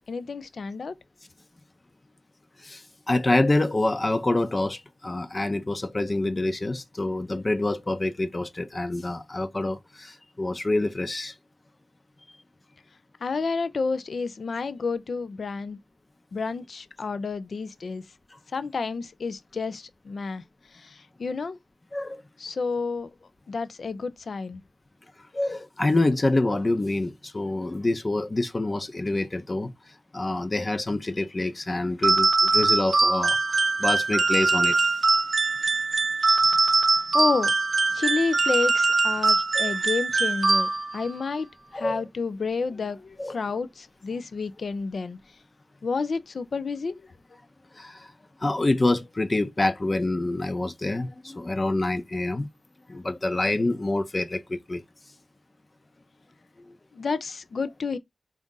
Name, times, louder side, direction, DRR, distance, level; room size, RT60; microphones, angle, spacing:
voice 1, 0.1-0.9 13.2-15.8 16.3-18.0 18.5-20.4 20.7-21.6 22.4-23.1 23.5-24.6 37.1-37.5 37.9-41.5 41.7-45.2 45.8-47.1 56.9-58.0, left 4 dB, 75° left, 0.4 m, -30 dB
voice 2, 2.6-11.3 21.9-22.2 25.3-29.7 30.1-34.9 39.5-39.7 41.7-42.0 43.2-43.4 47.8-48.1 48.4-52.5 52.9-54.8, left 2 dB, 35° left, 0.7 m, -26 dB
sound 1, 32.0-41.1, right 3 dB, 65° right, 0.3 m, -22 dB
3.9 x 2.5 x 3.7 m
cardioid pair, 55°, 0 cm